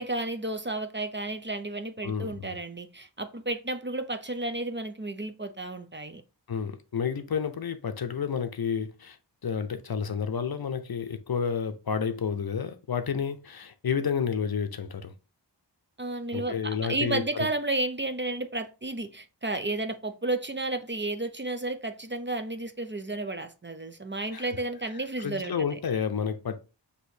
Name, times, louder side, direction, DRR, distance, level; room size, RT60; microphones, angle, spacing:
voice 1, 0.0-6.2 16.0-25.8, right 2 dB, 25° right, 0.5 m, -32 dB
voice 2, 2.0-2.5 6.5-9.2 9.4-15.1 16.3-17.5 24.3-24.5 25.2-26.6, left 6 dB, 60° left, 0.6 m, -30 dB
6.1 x 2.8 x 2.7 m
wide cardioid pair, 45°, 43 cm